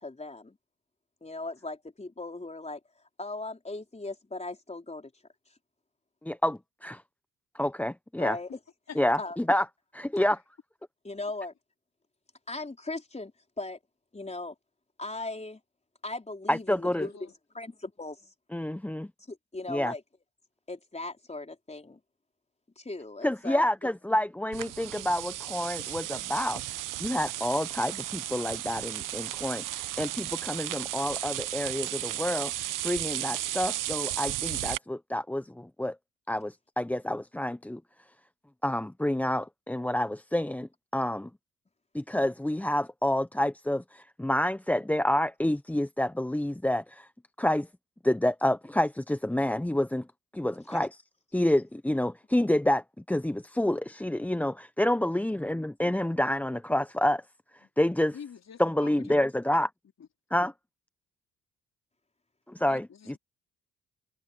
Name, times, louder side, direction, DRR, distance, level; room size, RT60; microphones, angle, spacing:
voice 1, 0.0-0.6 1.2-2.8 3.2-5.1 8.2-8.5 9.2-9.4 11.0-11.5 12.5-13.3 13.6-13.8 14.1-14.5 15.0-15.6 16.0-17.1 17.6-18.3 19.3-20.0 20.7-22.0 22.8-23.9 50.7-50.8, left 2 dB, 20° left, 4.5 m, -38 dB
voice 2, 6.2-7.0 7.5-8.4 9.0-9.6 9.9-10.4 16.5-17.1 18.5-19.1 19.7-19.9 23.2-26.6 27.0-32.5 32.8-36.0 36.3-37.8 38.6-41.3 41.9-47.1 47.4-47.7 48.0-50.1 50.3-51.0 51.3-57.2 57.8-58.1 58.6-59.7 60.3-60.5 62.5-62.8, left 1 dB, 5° left, 0.7 m, -28 dB
voice 3, 16.9-17.3 57.6-57.7 58.1-59.2 60.0-60.1 62.7-63.2, left 7 dB, 55° left, 3.7 m, -46 dB
sound 1, 24.5-34.8, right 14 dB, 75° right, 0.9 m, -34 dB
supercardioid pair, 60°, 32 cm